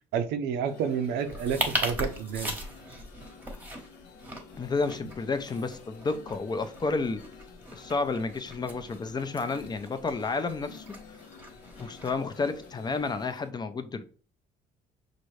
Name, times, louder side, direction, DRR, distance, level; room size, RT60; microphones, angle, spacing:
voice 1, 0.1-2.5, right 7 dB, 85° right, 0.6 m, -30 dB
sound 1, 0.7-13.5, left 6 dB, 90° left, 0.7 m, -51 dB
sound 2, 1.2-13.4, equal, 10° right, 1.0 m, -39 dB
voice 2, 4.6-7.2 7.7-10.8 11.8-14.1, left 4 dB, 25° left, 0.5 m, -31 dB
5.9 x 2.6 x 3.2 m
cardioid pair, 110°, 17 cm